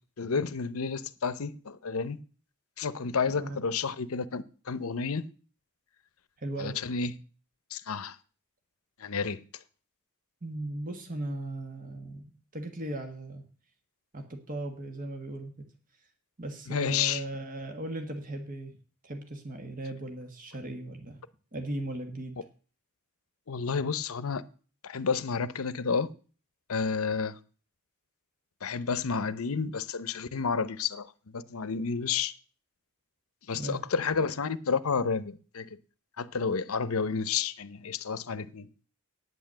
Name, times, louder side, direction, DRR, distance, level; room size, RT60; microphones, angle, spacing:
voice 1, 0.2-2.2 2.8-5.3 6.6-7.1 7.7-8.2 9.0-9.4 16.7-17.2 23.5-24.4 24.8-26.1 26.7-27.4 28.6-32.3 33.5-35.7 36.2-38.7, left 5 dB, 75° left, 0.7 m, -30 dB
voice 2, 6.4-6.8 10.4-13.4 14.1-15.5 16.4-18.8 19.0-21.2 21.5-22.4 33.5-33.8, right 1 dB, 40° right, 1.5 m, -37 dB
9.5 x 8.2 x 7.5 m
head